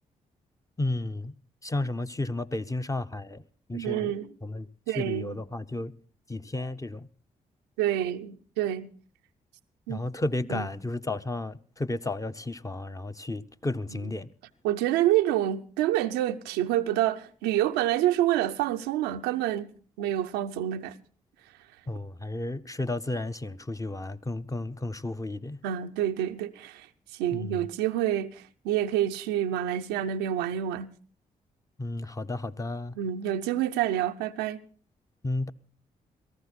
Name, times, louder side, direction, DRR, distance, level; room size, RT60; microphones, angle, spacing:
voice 1, 0.8-1.3 1.6-3.4 3.7-4.1 4.4-5.9 6.3-7.1 9.9-14.3 21.9-25.6 27.3-27.6 31.8-33.0 35.2-35.5, left 2 dB, 20° left, 0.8 m, -33 dB
voice 2, 3.7-4.3 4.9-5.4 7.8-8.9 9.9-10.0 10.5-10.7 13.9-14.1 14.6-19.7 20.0-21.0 25.6-26.9 27.1-30.9 33.0-34.6, right 12 dB, 90° right, 0.6 m, -28 dB
18.0 x 14.0 x 4.1 m
hypercardioid pair, 45°, 17 cm